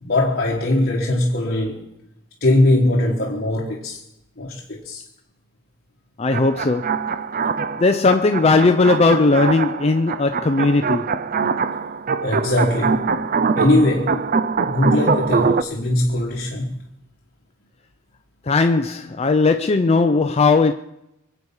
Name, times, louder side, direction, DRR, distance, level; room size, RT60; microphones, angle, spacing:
voice 1, 0.0-1.9 2.4-4.0 4.4-5.0 12.2-13.1 13.5-14.4 14.6-16.8, left 1 dB, 50° left, 1.4 m, -20 dB
voice 2, 6.2-7.0 7.8-11.2 18.4-20.7, left 3 dB, 30° left, 0.5 m, -17 dB
sound 1, 6.3-15.6, right 5 dB, 45° right, 0.5 m, -23 dB
24.0 x 8.0 x 5.5 m
head